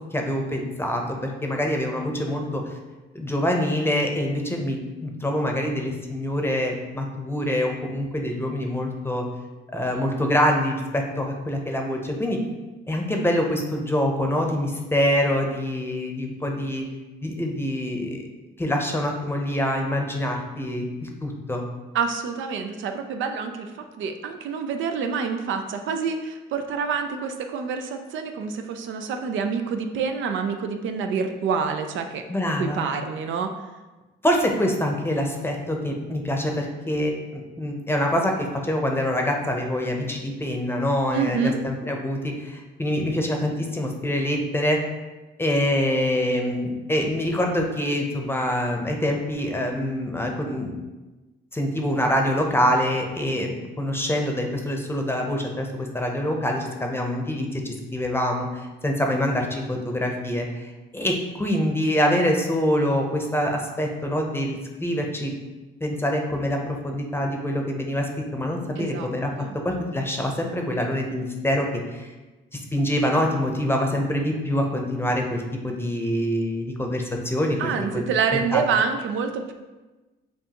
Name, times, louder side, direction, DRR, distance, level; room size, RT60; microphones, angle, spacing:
voice 1, 0.1-2.6 3.1-9.2 9.7-12.4 12.9-16.8 17.2-18.3 18.6-21.6 32.3-32.9 34.2-44.8 45.4-50.8 51.5-65.3 65.8-72.1 72.5-78.0 78.3-78.6, left 1 dB, 10° left, 2 dB, 0.7 m, -25 dB
voice 2, 21.9-23.7 24.0-32.2 32.6-33.5 41.1-41.6 68.8-69.1 69.4-69.6 77.6-79.5, right 6 dB, 75° right, 6 dB, 0.5 m, -27 dB
7.2 x 2.5 x 2.9 m, 1.2 s
cardioid pair, 90°, 20 cm